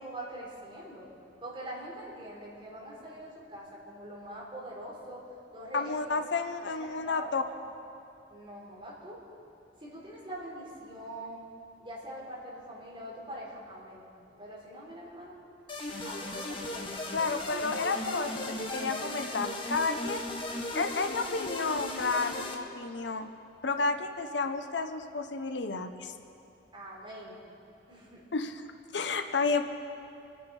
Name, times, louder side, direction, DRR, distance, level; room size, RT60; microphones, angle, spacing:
voice 1, 0.0-1.1 1.4-5.3 5.5-7.3 8.3-9.2 9.8-11.4 11.8-14.1 14.4-15.4 16.0-17.1 23.7-23.8 26.7-27.4 27.9-28.2, right 1 dB, 30° right, -5 dB, 3.8 m, -44 dB
voice 2, 5.7-7.4 17.1-18.3 18.7-20.2 20.7-23.3 23.6-26.1 28.3-28.6 28.9-29.6, left 4 dB, 70° left, 7 dB, 0.8 m, -31 dB
sound 1, 15.7-22.5, left 2 dB, 30° left, 1.3 m, -37 dB
25.5 x 9.4 x 5.4 m, 2.7 s
head